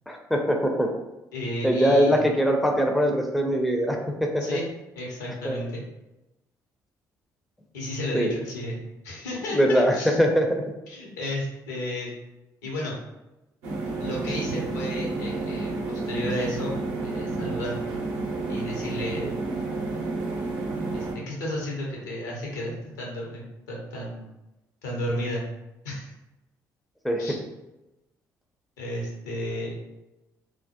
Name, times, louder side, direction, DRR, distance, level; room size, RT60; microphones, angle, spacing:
voice 1, 0.1-0.9 1.6-4.4 5.4-5.6 8.1-8.3 9.5-10.6 19.2-19.3 27.0-27.4, equal, ahead, 2 dB, 0.4 m, -22 dB
voice 2, 1.3-2.2 4.4-4.7 5.0-5.8 7.7-8.8 9.0-10.2 10.9-12.1 12.6-12.9 14.0-16.7 17.0-17.8 18.5-19.3 20.9-24.3 24.8-25.4 25.8-26.1 27.2-27.4 28.8-29.7, left 1 dB, 75° left, -3 dB, 0.7 m, -33 dB
sound 1, 13.6-21.1, right 3 dB, 70° right, 0.5 m, -30 dB
2.2 x 2.0 x 2.7 m, 0.98 s
figure-of-eight pair, 45°, 10 cm